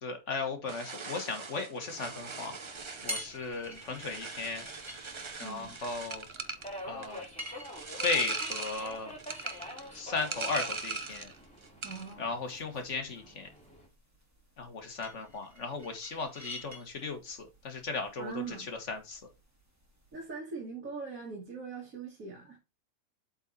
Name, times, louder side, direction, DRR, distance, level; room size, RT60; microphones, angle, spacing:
voice 1, 0.0-2.6 3.0-4.6 5.4-6.2 6.9-7.3 8.0-9.1 9.9-11.3 12.2-13.5 14.6-18.6 18.9-19.2, left 4 dB, 55° left, 1.7 m, -36 dB
sound 1, 0.7-11.4 11.6-12.1, right 4 dB, 50° right, 0.3 m, -40 dB
Subway metro underground, 1.8-13.9, left 1 dB, 5° left, 2.4 m, -49 dB
sound 2, 2.8-20.3, equal, 10° right, 2.0 m, -49 dB
voice 2, 5.4-5.8 11.8-12.3 18.2-18.7 20.1-22.6, right 5 dB, 70° right, 2.2 m, -41 dB
7.9 x 4.0 x 4.2 m
omnidirectional pair, 1.5 m